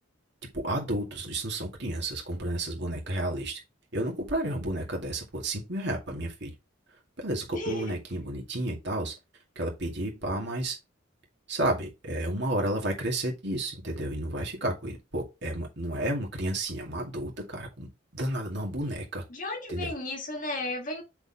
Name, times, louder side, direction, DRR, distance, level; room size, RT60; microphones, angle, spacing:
voice 1, 0.5-3.6 3.9-6.5 7.2-9.1 9.6-10.8 11.5-17.9 18.1-19.2 19.7-19.9, right 1 dB, 55° right, 2.2 m, -31 dB
voice 2, 7.5-7.9 19.3-21.0, left 2 dB, 40° left, 1.6 m, -34 dB
6.8 x 4.4 x 3.5 m
head